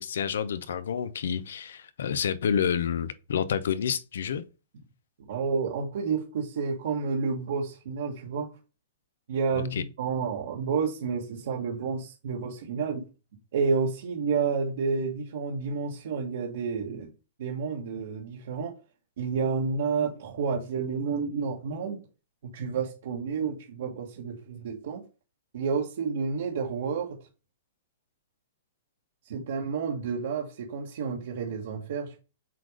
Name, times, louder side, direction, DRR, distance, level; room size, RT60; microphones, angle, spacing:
voice 1, 0.0-4.4 9.5-9.8, left 8 dB, 80° left, 0.7 m, -29 dB
voice 2, 5.2-8.5 9.3-13.1 13.5-17.1 17.4-18.8 19.2-22.0 22.5-25.0 25.5-27.2 29.2-32.2, right 5 dB, 65° right, 1.4 m, -30 dB
7.6 x 2.6 x 4.9 m
hypercardioid pair, 155°, 0 cm